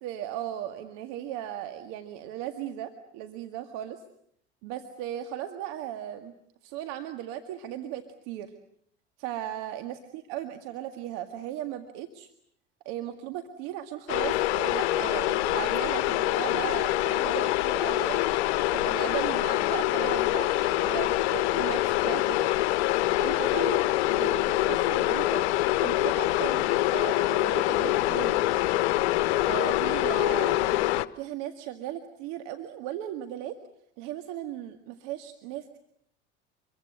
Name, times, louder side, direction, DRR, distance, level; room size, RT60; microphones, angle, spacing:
voice 1, 0.0-4.0 4.6-6.3 6.6-8.5 9.2-12.3 12.9-18.4 18.7-22.5 23.2-25.4 25.8-28.4 29.5-30.8 31.2-33.6 34.0-35.8, right 12 dB, 65° right, 6 dB, 2.0 m, -37 dB
sound 1, 14.1-31.1, left 16 dB, 70° left, 1.0 m, -25 dB
27.0 x 23.5 x 8.0 m, 0.70 s
hypercardioid pair, 75°, 33 cm